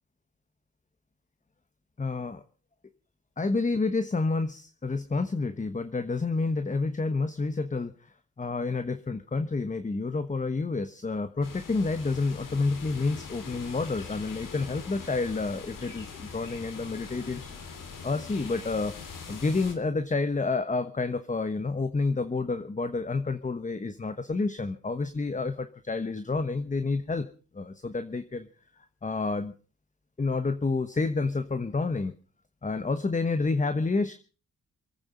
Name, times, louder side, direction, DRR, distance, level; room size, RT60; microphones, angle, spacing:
voice 1, 2.0-2.4 3.4-17.5 18.0-18.9 19.3-27.3 27.5-28.5 29.0-29.5 30.2-32.1 32.6-34.1, left 3 dB, 25° left, 10 dB, 1.1 m, -29 dB
sound 1, 11.4-19.8, left 5 dB, 80° left, 3.4 m, -42 dB
27.0 x 9.0 x 5.4 m, 0.38 s
cardioid pair, 85°, 32 cm